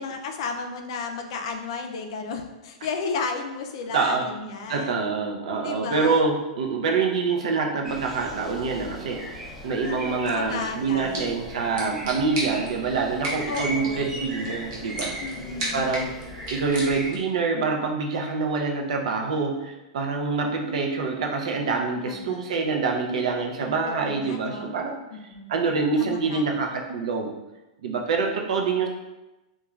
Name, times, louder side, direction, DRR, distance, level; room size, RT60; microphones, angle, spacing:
voice 1, 0.0-5.1 5.6-6.2 9.8-11.3 13.5-14.1 15.2-15.9 22.0-22.4 23.8-24.7 25.1-25.5 26.0-26.5, left 4 dB, 50° left, 4 dB, 0.4 m, -33 dB
voice 2, 3.9-9.4 9.6-15.2 15.7-16.2 16.5-25.0 25.5-27.3 27.8-28.9, right 4 dB, 75° right, 1 dB, 0.5 m, -26 dB
sound 1, 7.8-17.1, equal, 10° right, 0.5 m, -38 dB
sound 2, 10.8-17.3, right 1 dB, 45° right, 0.8 m, -36 dB
2.3 x 2.2 x 3.0 m, 1.0 s
supercardioid pair, 165°, 4 cm